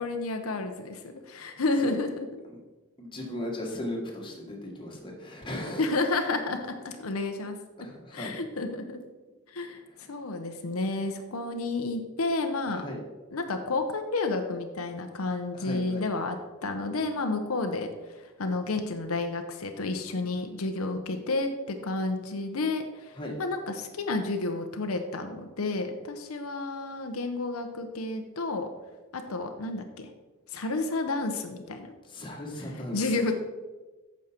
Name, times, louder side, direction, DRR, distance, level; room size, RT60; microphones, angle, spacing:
voice 1, 0.0-2.3 5.8-7.6 8.1-9.0 9.5-9.8 10.1-12.8 13.3-28.7 29.1-30.1 30.5-31.9 32.9-33.3, left 3 dB, 90° left, 6 dB, 0.8 m, -31 dB
voice 2, 3.0-5.8 7.8-8.3 9.9-10.1 12.7-13.0 15.5-16.0 23.2-23.3 32.1-33.3, left 1 dB, 25° left, -1 dB, 1.7 m, -37 dB
8.7 x 6.4 x 4.3 m, 1.2 s
head